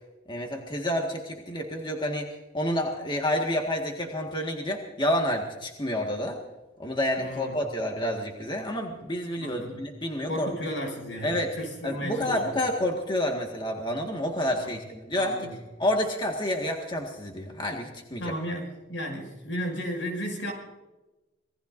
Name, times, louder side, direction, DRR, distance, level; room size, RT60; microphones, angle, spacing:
voice 1, 0.3-2.3 2.5-6.4 6.8-10.5 11.2-11.5 11.8-15.5 15.8-18.2, left 1 dB, 25° left, 1 dB, 1.8 m, -29 dB
voice 2, 7.2-7.6 9.4-9.8 10.3-12.6 14.4-14.7 15.2-15.6 18.2-20.5, equal, 80° left, 1 dB, 6.7 m, -34 dB
26.5 x 20.0 x 2.7 m, 1.1 s
head